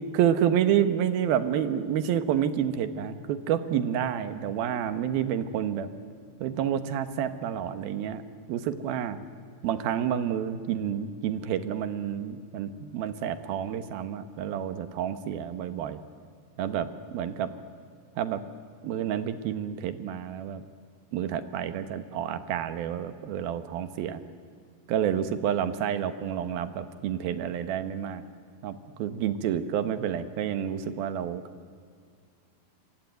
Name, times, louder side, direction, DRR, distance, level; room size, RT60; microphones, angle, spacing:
voice 1, 0.1-5.9 6.4-8.2 8.5-9.2 9.6-16.0 16.6-17.5 18.2-18.4 18.8-20.6 21.1-24.2 24.9-28.2 28.6-31.4, right 9 dB, 85° right, 11 dB, 3.1 m, -29 dB
26.5 x 23.5 x 9.2 m, 2.2 s
omnidirectional pair, 4.2 m